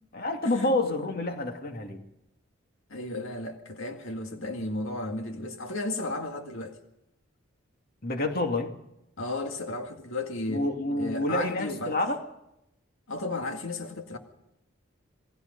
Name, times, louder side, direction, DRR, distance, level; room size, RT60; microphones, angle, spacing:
voice 1, 0.1-2.0 8.0-8.7 10.5-12.2, left 2 dB, 50° left, 2.5 m, -28 dB
voice 2, 2.9-6.8 9.2-10.7 11.0-12.0 13.1-14.2, left 2 dB, 85° left, 2.0 m, -34 dB
27.5 x 19.0 x 5.5 m
head